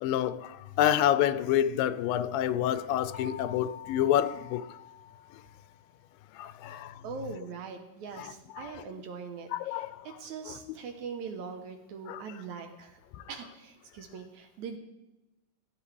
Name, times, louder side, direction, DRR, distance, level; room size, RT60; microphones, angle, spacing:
voice 1, 0.0-4.8 6.3-7.0 8.2-8.8 9.5-10.2 10.5-10.6 12.1-12.2 13.1-13.2, left 11 dB, 85° left, 2.3 m, -28 dB
sound 1, 3.1-5.9, left 8 dB, 45° left, 1.4 m, -47 dB
voice 2, 6.6-13.0 13.3-14.8, right 5 dB, 70° right, 2.0 m, -42 dB
15.5 x 12.0 x 3.3 m
omnidirectional pair, 4.0 m